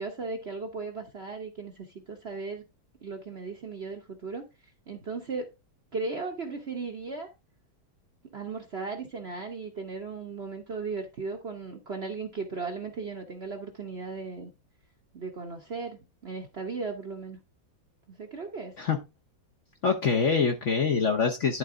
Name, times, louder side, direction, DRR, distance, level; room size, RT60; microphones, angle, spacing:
voice 1, 0.0-2.6 3.0-4.5 4.9-5.5 5.9-7.3 8.3-14.5 15.1-17.4 18.1-18.8, right 4 dB, 45° right, 0.9 m, -36 dB
voice 2, 19.8-21.6, left 5 dB, 50° left, 0.9 m, -25 dB
11.0 x 4.0 x 3.6 m
omnidirectional pair, 2.1 m